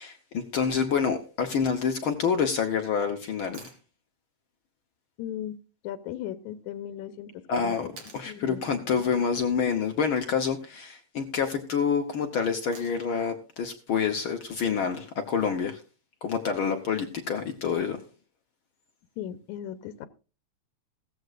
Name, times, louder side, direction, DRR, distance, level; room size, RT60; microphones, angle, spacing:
voice 1, 0.0-3.7 7.5-7.9 8.1-15.8 16.2-18.0, left 6 dB, 60° left, 6 dB, 1.4 m, -27 dB
sound 1, 3.5-3.8 6.1-6.2 8.0-8.3 10.3-10.7 12.7-13.2 15.3-15.4, right 4 dB, 55° right, 4.0 m, -48 dB
voice 2, 5.2-5.6 5.8-7.9 8.2-9.2 19.2-20.1, left 11 dB, 90° left, 12 dB, 2.3 m, -38 dB
16.5 x 14.5 x 2.5 m, 0.33 s
omnidirectional pair, 3.4 m